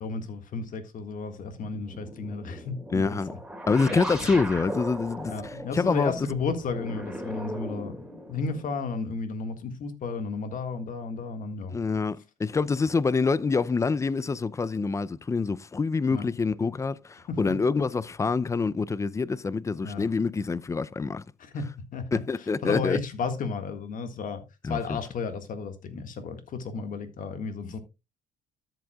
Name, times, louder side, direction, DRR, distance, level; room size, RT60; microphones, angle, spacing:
voice 1, 0.0-3.2 3.9-4.0 5.3-8.0 8.3-11.8 16.1-16.3 17.3-17.5 19.8-20.1 21.4-21.7 21.9-24.4 24.7-27.8, left 4 dB, 50° left, 1.7 m, -33 dB
sound 1, 1.5-8.8, right 1 dB, 5° right, 2.5 m, -38 dB
voice 2, 2.9-3.3 3.7-6.1 11.7-21.2 22.1-23.0 24.6-25.0, left 4 dB, 15° left, 0.4 m, -26 dB
13.0 x 7.7 x 2.3 m
cardioid pair, 110°, 17 cm